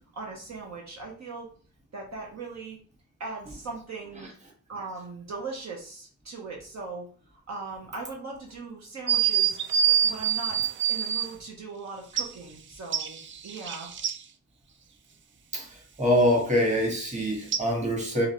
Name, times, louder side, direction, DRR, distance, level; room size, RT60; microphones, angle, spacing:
voice 1, 0.1-1.5 1.9-2.8 3.2-4.3 4.7-7.0 7.5-9.6 9.8-10.6 10.9-13.9, right 3 dB, 60° right, -1 dB, 1.1 m, -39 dB
sound 1, 9.1-11.3 12.2-12.3 12.9-14.2 17.5-17.6, right 9 dB, 40° right, 0.4 m, -25 dB
voice 2, 16.0-18.3, equal, 20° right, 0 dB, 1.5 m, -24 dB
5.0 x 2.5 x 3.1 m, 0.42 s
cardioid pair, 105°, 31 cm